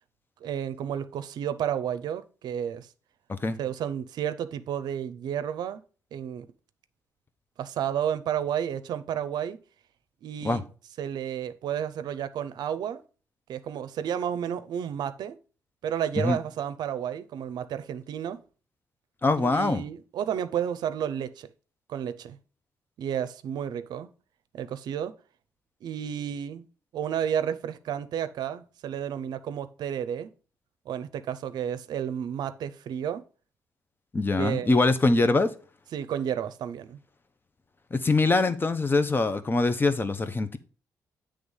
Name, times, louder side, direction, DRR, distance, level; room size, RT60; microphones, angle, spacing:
voice 1, 0.4-2.9 3.6-5.8 6.1-6.5 7.6-9.6 10.2-10.6 11.0-13.0 13.5-15.4 15.8-18.4 19.4-21.5 21.9-22.4 23.0-24.1 24.5-25.1 25.8-26.7 26.9-30.3 30.9-33.2 34.4-34.7 35.9-37.0, right 9 dB, 80° right, 0.5 m, -31 dB
voice 2, 19.2-19.8 34.1-35.5 37.9-40.6, left 3 dB, 30° left, 0.8 m, -23 dB
7.9 x 3.3 x 5.4 m
cardioid pair, 75°, 7 cm